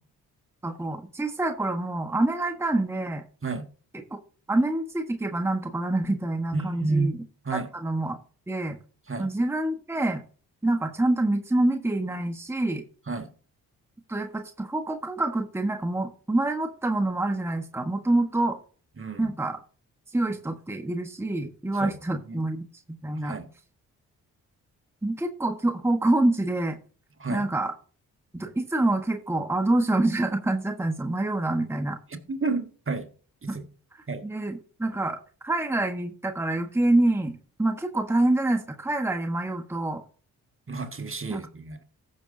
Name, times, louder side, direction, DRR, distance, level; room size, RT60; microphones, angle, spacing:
voice 1, 0.6-3.2 3.9-4.0 4.5-7.2 7.5-8.2 8.5-8.8 9.2-10.2 10.6-12.8 14.1-18.6 19.2-19.6 20.1-22.6 23.0-23.4 25.0-26.8 27.3-27.7 28.3-32.0 33.5-33.6 34.2-35.2 35.4-40.0 41.3-41.4, right 2 dB, 5° right, 1.2 m, -26 dB
voice 2, 6.5-7.2 7.4-7.7 9.1-9.3 13.1-13.3 19.0-19.3 21.8-22.0 22.3-22.4 23.2-23.5 27.2-27.4 32.1-33.1 33.4-33.7 34.1-34.2 40.7-41.8, right 3 dB, 30° right, 1.5 m, -30 dB
15.5 x 6.2 x 2.7 m
supercardioid pair, 45°, 39 cm